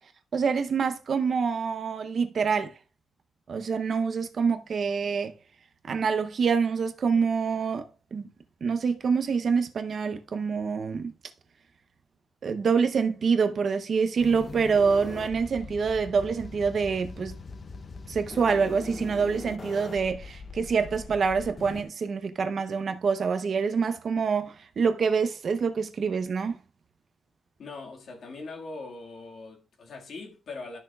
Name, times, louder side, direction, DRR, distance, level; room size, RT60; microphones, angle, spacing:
voice 1, 0.3-2.7 3.5-5.3 5.8-7.9 8.1-8.3 8.6-11.1 12.4-17.4 18.1-26.6, right 5 dB, 45° right, 0.7 m, -26 dB
sound 1, 14.2-21.8, left 4 dB, 35° left, 0.5 m, -41 dB
voice 2, 27.6-30.8, left 3 dB, 60° left, 1.8 m, -41 dB
13.0 x 6.2 x 2.3 m
wide cardioid pair, 155°, 0 cm